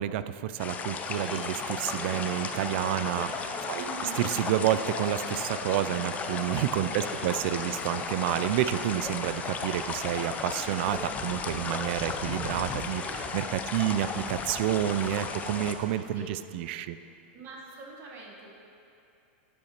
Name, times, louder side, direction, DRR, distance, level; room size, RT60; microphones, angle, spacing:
voice 1, 0.0-13.0 13.3-17.0, right 12 dB, 60° right, 13 dB, 0.4 m, -29 dB
sound 1, 0.6-15.7, left 5 dB, 20° left, 0.6 m, -35 dB
sound 2, 1.1-15.9, right 1 dB, 10° right, 1.6 m, -47 dB
voice 2, 3.7-4.2 6.8-7.3 7.6-7.8 12.9-14.0 16.1-16.3 17.3-18.5, right 4 dB, 35° right, -1 dB, 1.3 m, -46 dB
11.5 x 8.7 x 3.0 m, 2.7 s
hypercardioid pair, 130°, 7 cm